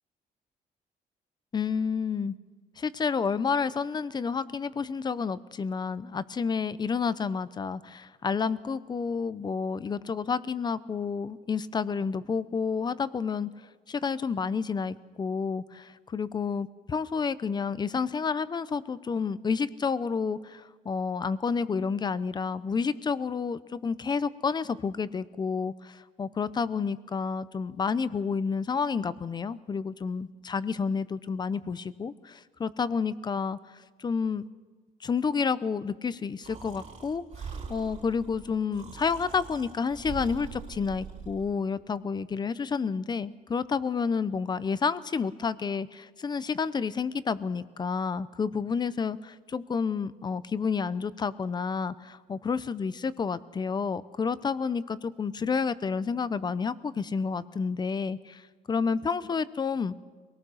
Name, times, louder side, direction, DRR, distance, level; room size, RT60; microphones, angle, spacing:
voice 1, 1.5-2.3 2.8-13.5 13.9-33.6 34.0-34.4 35.0-37.2 37.7-58.4 58.7-59.9, left 5 dB, 30° left, 16 dB, 0.7 m, -30 dB
Breathing, 36.4-41.5, right 6 dB, 45° right, 4.0 m, -42 dB
23.5 x 18.5 x 6.4 m, 1.4 s
cardioid pair, 140°, 15 cm